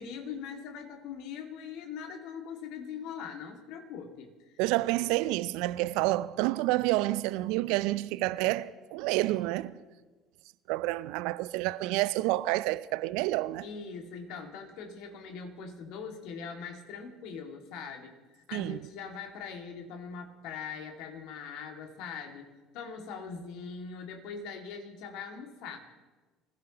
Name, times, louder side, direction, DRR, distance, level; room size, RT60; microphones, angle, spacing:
voice 1, 0.0-4.5 13.6-25.8, left 6 dB, 65° left, 2.2 m, -42 dB
voice 2, 4.6-9.8 10.7-13.6 18.5-18.8, right 18 dB, 65° right, 0.5 m, -29 dB
25.0 x 15.5 x 3.0 m
hypercardioid pair, 60°, 0 cm